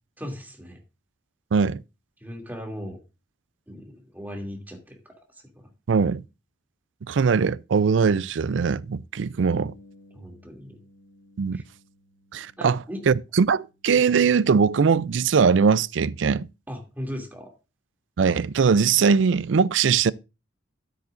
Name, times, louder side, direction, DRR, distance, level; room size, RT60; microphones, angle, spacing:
voice 1, 0.2-0.8 2.2-3.0 3.7-5.2 5.5-5.6 10.1-10.8 11.5-11.6 12.6-13.0 16.7-17.5, equal, 10° right, 2.7 m, -37 dB
voice 2, 1.5-1.8 5.9-6.2 7.1-9.7 11.4-11.6 12.3-16.5 18.2-20.1, right 5 dB, 80° right, 0.4 m, -21 dB
Bass guitar, 9.5-15.8, left 1 dB, 55° left, 3.4 m, -56 dB
12.5 x 9.0 x 2.6 m
head